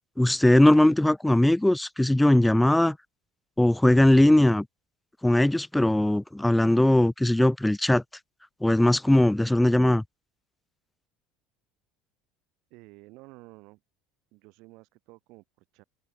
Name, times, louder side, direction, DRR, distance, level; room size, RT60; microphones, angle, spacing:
voice 1, 0.2-3.0 3.6-4.7 5.2-8.0 8.6-10.0, left 1 dB, 5° left, 0.4 m, -20 dB
voice 2, 12.7-13.8 14.3-15.8, right 23 dB, 65° right, 5.8 m, -51 dB
open air
supercardioid pair, 115°, 0 cm